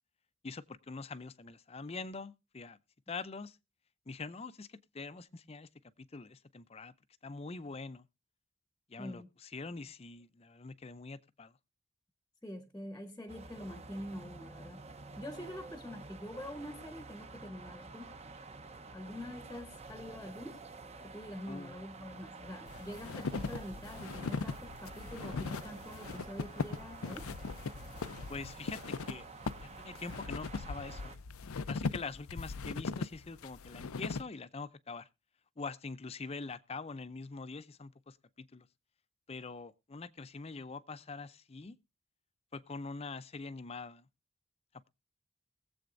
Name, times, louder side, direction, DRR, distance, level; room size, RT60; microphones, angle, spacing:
voice 1, 0.4-2.8 3.1-3.6 4.1-5.7 6.0-6.9 7.2-8.1 8.9-11.5 21.5-21.8 28.3-29.2 29.6-31.2 31.7-35.1 35.6-38.7 39.3-41.8 42.5-44.0, left 4 dB, 30° left, 0.5 m, -44 dB
voice 2, 9.0-9.3 12.4-14.8 15.2-18.2 18.9-20.7 21.0-27.3, left 1 dB, 10° left, 0.9 m, -45 dB
sound 1, 13.3-31.2, right 3 dB, 30° right, 0.8 m, -50 dB
sound 2, 22.7-34.2, left 4 dB, 85° left, 0.6 m, -39 dB
21.5 x 7.9 x 2.5 m
head